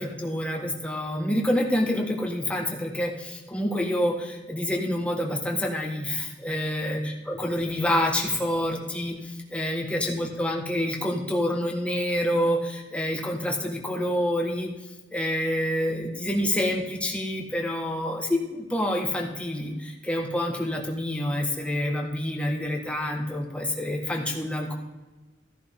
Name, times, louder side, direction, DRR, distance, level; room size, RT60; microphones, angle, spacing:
voice 1, 0.0-9.2 9.5-14.7 15.1-19.7 20.1-24.7, left 1 dB, 5° left, 0 dB, 1.5 m, -27 dB
15.0 x 10.5 x 3.6 m, 1.1 s
head